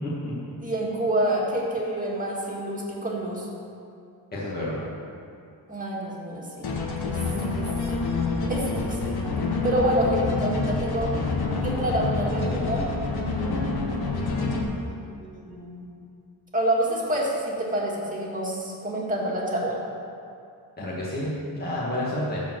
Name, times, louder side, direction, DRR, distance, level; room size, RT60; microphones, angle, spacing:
voice 1, 0.0-0.3 4.3-4.8 20.8-22.4, left 1 dB, 20° left, -7 dB, 1.9 m, -30 dB
voice 2, 0.6-3.5 5.7-6.7 7.0-7.2 7.5-7.7 8.5-9.2 9.6-11.2 11.6-12.9 13.3-15.9 16.5-19.8, right 1 dB, 20° right, -4 dB, 2.0 m, -28 dB
sound 1, 6.6-14.6, left 3 dB, 60° left, 1.3 m, -27 dB
12.5 x 4.6 x 7.8 m, 2.5 s
wide cardioid pair, 145°, 43 cm